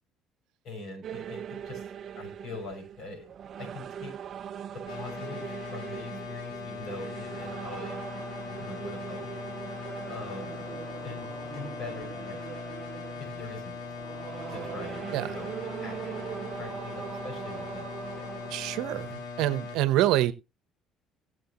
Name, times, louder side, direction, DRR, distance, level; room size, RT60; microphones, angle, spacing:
voice 1, 0.6-1.9 2.1-3.3 3.6-4.2 4.7-8.2 8.5-9.3 10.1-10.7 11.0-12.4 12.7-12.8 13.2-14.2 14.5-15.5 15.8-18.3, left 3 dB, 55° left, 6.5 m, -43 dB
sound 1, 1.0-19.1, right 9 dB, 50° right, 0.6 m, -41 dB
sound 2, 4.9-19.8, left 5 dB, 80° left, 3.3 m, -40 dB
voice 2, 18.5-20.3, right 14 dB, 80° right, 0.8 m, -26 dB
18.0 x 7.5 x 3.0 m
cardioid pair, 120°, 0 cm